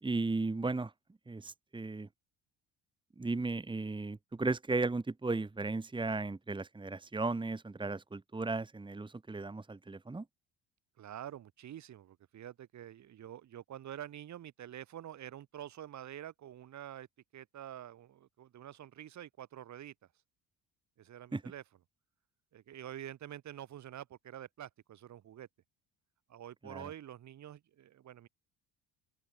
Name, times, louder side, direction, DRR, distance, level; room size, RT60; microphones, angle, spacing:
voice 1, 0.0-0.9 1.3-2.1 3.2-10.2 21.3-21.4 26.6-26.9, right 3 dB, 15° right, 2.5 m, -35 dB
voice 2, 11.0-17.1 17.3-19.9 21.0-21.6 22.5-25.5 26.3-28.3, right 11 dB, 55° right, 7.2 m, -47 dB
open air
cardioid pair, 100°, 34 cm